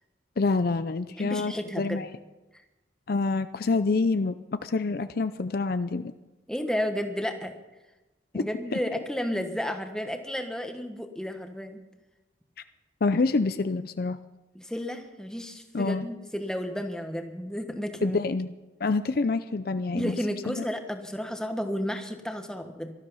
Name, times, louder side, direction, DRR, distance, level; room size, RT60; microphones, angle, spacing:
voice 1, 0.4-2.1 3.1-4.4 4.6-6.1 8.3-8.4 8.7-8.8 13.0-14.2 15.7-16.1 18.0-18.5 18.8-20.2 20.5-20.6, left 3 dB, 50° left, 11 dB, 0.5 m, -27 dB
voice 2, 1.2-2.0 2.5-2.6 6.5-7.5 8.3-11.8 14.5-18.2 19.9-22.9, equal, 5° left, 5 dB, 1.2 m, -32 dB
18.0 x 13.0 x 5.6 m, 1.1 s
head